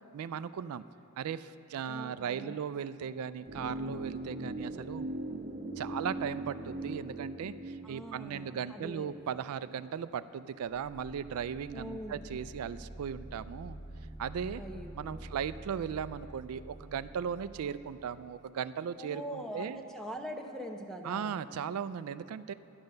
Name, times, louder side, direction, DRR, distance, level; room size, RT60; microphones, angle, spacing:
voice 1, 0.1-0.8 1.2-5.1 5.8-13.8 14.2-14.6 14.9-19.8 21.0-22.5, right 7 dB, 80° right, 14 dB, 0.3 m, -37 dB
voice 2, 1.9-2.6 7.8-9.1 11.7-12.2 14.6-15.3 19.0-21.3, equal, ahead, 3 dB, 0.8 m, -43 dB
sound 1, 3.4-9.5 9.7-9.8, right 2 dB, 35° right, 0.9 m, -40 dB
sound 2, 10.8-18.4, right 1 dB, 30° left, 1.8 m, -48 dB
11.5 x 10.5 x 6.6 m, 2.9 s
head